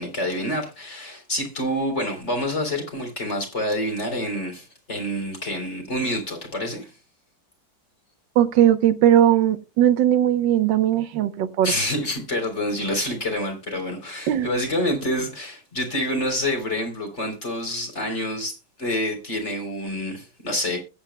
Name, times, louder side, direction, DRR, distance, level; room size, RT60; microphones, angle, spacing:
voice 1, 0.0-6.9 11.6-20.8, left 1 dB, 35° left, 3.9 m, -27 dB
voice 2, 8.4-11.7 14.3-14.5, right 11 dB, 70° right, 1.6 m, -19 dB
21.0 x 8.9 x 2.2 m
omnidirectional pair, 2.1 m